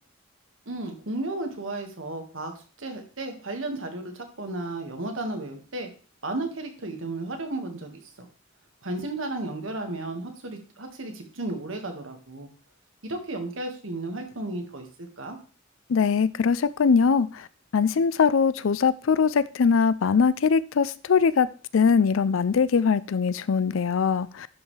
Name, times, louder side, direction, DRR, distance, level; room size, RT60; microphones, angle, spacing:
voice 1, 0.7-2.5 2.8-5.9 6.2-8.3 8.8-12.5 13.0-14.9 15.2-15.4, right 2 dB, 70° right, 1.7 m, -33 dB
voice 2, 15.9-17.5 17.7-21.5 21.7-24.5, left 5 dB, 75° left, 0.4 m, -22 dB
11.5 x 5.5 x 3.3 m
head